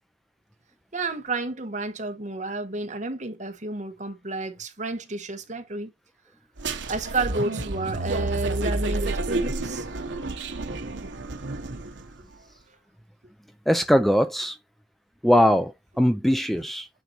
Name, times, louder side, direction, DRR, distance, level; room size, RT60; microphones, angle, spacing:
voice 1, 0.9-5.9 6.9-9.9 16.5-16.6, right 3 dB, 40° right, 1.2 m, -31 dB
sound 1, 6.6-12.2, right 2 dB, 80° right, 1.0 m, -30 dB
voice 2, 13.7-14.6 15.2-16.9, equal, ahead, 0.3 m, -21 dB
9.1 x 4.0 x 2.9 m
head